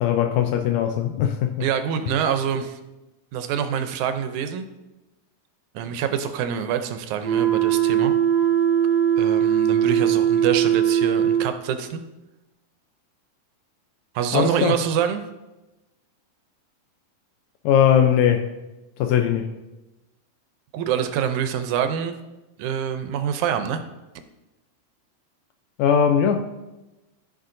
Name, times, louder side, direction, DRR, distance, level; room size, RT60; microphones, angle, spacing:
voice 1, 0.0-1.7 14.3-14.8 17.6-18.5 19.0-19.5 25.8-26.4, left 8 dB, 80° left, 1.7 m, -20 dB
voice 2, 1.6-2.8 3.3-4.7 5.8-8.1 9.2-12.0 14.2-15.2 20.7-22.2 22.6-23.8, right 8 dB, 80° right, 2.0 m, -25 dB
sound 1, 7.2-11.5, right 9 dB, 5° left, 1.5 m, -20 dB
15.0 x 5.6 x 2.6 m
omnidirectional pair, 3.6 m